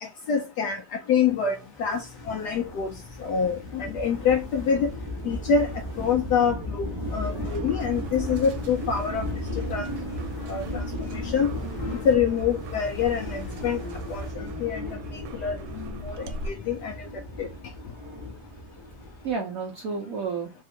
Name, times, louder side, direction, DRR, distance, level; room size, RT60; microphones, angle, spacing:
voice 1, 0.0-4.9 5.2-9.3 9.6-9.9 10.5-10.8 11.1-11.5 12.0-13.8 14.1-14.8 15.1-17.5, left 6 dB, 75° left, 0.9 m, -26 dB
sound 1, 1.2-7.6 7.9-14.3, left 2 dB, 40° left, 0.8 m, -49 dB
sound 2, 1.9-19.3, left 1 dB, 20° right, 0.8 m, -35 dB
voice 2, 7.3-8.0 19.2-20.5, right 5 dB, 65° right, 0.9 m, -32 dB
sound 3, 7.4-16.5, right 2 dB, 85° right, 1.4 m, -42 dB
3.5 x 2.4 x 4.2 m
omnidirectional pair, 2.2 m